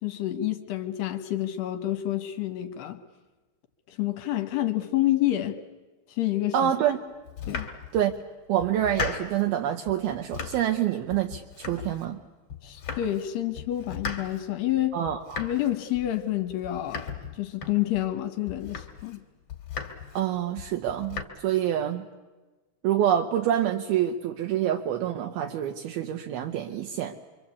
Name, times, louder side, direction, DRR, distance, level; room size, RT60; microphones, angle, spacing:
voice 1, 0.0-3.0 3.9-5.6 6.1-6.7 7.5-7.7 12.6-15.0 15.4-19.2, left 14 dB, 70° left, 8 dB, 2.9 m, -28 dB
voice 2, 6.5-7.0 7.9-8.1 8.5-12.2 14.9-15.5 20.1-22.0 22.8-27.2, right 10 dB, 75° right, 4 dB, 2.3 m, -27 dB
Domestic sounds home sounds, 7.3-8.2 8.6-9.5 9.9-10.8 11.1-12.2 12.5-13.3 13.5-18.1 18.5-19.2 19.5-20.2 20.6-21.2, left 5 dB, 40° left, 2.5 m, -37 dB
27.0 x 24.5 x 8.4 m, 1.2 s
omnidirectional pair, 5.5 m